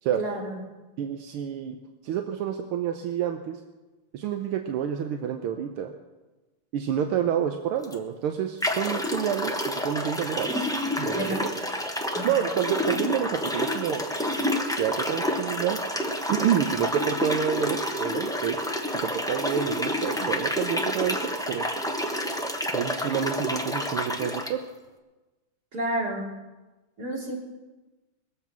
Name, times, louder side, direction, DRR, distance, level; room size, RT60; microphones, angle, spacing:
voice 1, 0.2-0.6 11.1-11.4 12.1-12.4 25.7-26.3 27.0-27.3, right 1 dB, 45° right, -3 dB, 3.5 m, -30 dB
voice 2, 1.0-1.8 2.0-3.6 4.1-5.9 6.7-10.5 11.0-11.5 12.2-14.0 14.8-15.8 16.3-18.6 18.9-21.7 22.7-24.6, right 9 dB, 80° right, 5 dB, 1.7 m, -28 dB
sound 1, 7.8-7.9 8.6-24.5, left 1 dB, 5° left, 0.3 m, -29 dB
22.0 x 7.6 x 6.0 m, 1.2 s
omnidirectional pair, 2.4 m